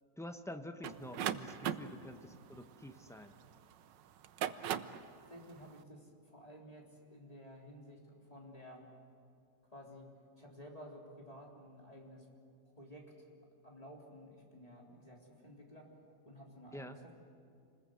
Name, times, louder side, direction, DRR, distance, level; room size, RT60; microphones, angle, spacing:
voice 1, 0.2-3.3 16.7-17.0, left 1 dB, 5° left, 7 dB, 0.6 m, -48 dB
sound 1, 0.8-3.6 4.2-5.1, right 9 dB, 85° right, 1.5 m, -38 dB
voice 2, 5.2-8.9 9.7-10.1 10.4-12.3 12.8-13.3 13.6-17.1, equal, 20° left, -2 dB, 3.8 m, -53 dB
27.5 x 20.5 x 7.8 m, 2.5 s
omnidirectional pair, 1.9 m